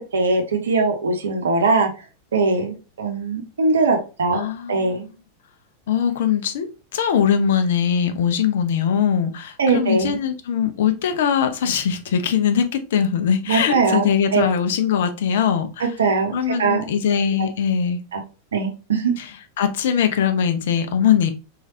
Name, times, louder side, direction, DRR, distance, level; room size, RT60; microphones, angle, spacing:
voice 1, 0.1-1.9 2.3-5.1 9.6-10.2 13.5-14.1 14.3-14.4 15.8-16.3 16.6-16.8 17.4-17.5 18.1-18.2 18.5-19.1, right 4 dB, 65° right, 0.6 m, -21 dB
voice 2, 4.3-5.0 5.9-15.9 16.3-18.0 19.2-19.3 19.6-21.3, left 8 dB, 55° left, 0.4 m, -21 dB
3.2 x 2.3 x 2.7 m
figure-of-eight pair, 90°, 0 cm